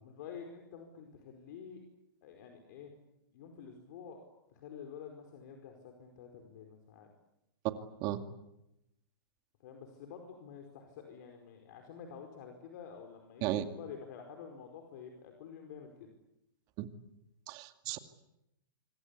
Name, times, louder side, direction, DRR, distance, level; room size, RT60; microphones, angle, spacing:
voice 1, 0.0-1.8 2.2-2.9 3.3-7.1 9.6-16.1, left 7 dB, 55° left, 3 dB, 5.0 m, -49 dB
voice 2, 17.5-18.0, right 14 dB, 35° right, 8 dB, 2.4 m, -34 dB
26.0 x 26.0 x 8.5 m, 0.87 s
hypercardioid pair, 145°, 12 cm